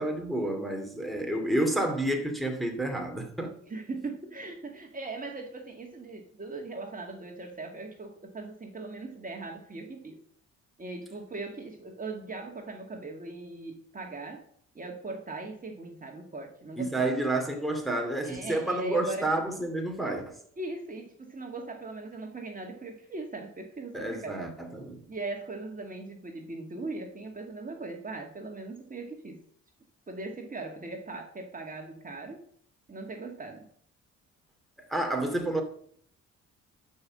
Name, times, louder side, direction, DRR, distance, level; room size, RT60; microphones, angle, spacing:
voice 1, 0.0-3.6 16.8-20.4 23.9-25.0 34.9-35.6, right 1 dB, ahead, 2.5 m, -30 dB
voice 2, 3.7-10.2 10.8-14.4 14.7-17.3 18.2-19.3 20.6-24.4 25.1-29.4 30.1-32.4 32.9-33.7, right 3 dB, 30° right, 2.2 m, -39 dB
12.0 x 5.7 x 7.6 m
cardioid pair, 90°, 30 cm